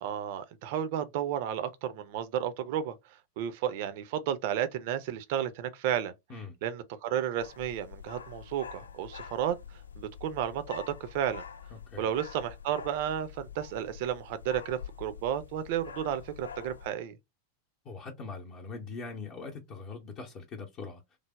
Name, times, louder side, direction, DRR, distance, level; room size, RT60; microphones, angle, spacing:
voice 1, 0.0-2.9 3.4-6.1 6.6-11.4 12.0-17.2, right 10 dB, 50° right, 0.5 m, -32 dB
sound 1, 7.4-16.9, left 7 dB, 75° left, 0.7 m, -46 dB
voice 2, 11.7-12.1 17.8-21.0, left 4 dB, 35° left, 0.7 m, -42 dB
3.3 x 2.0 x 3.4 m
figure-of-eight pair, 90°, 0 cm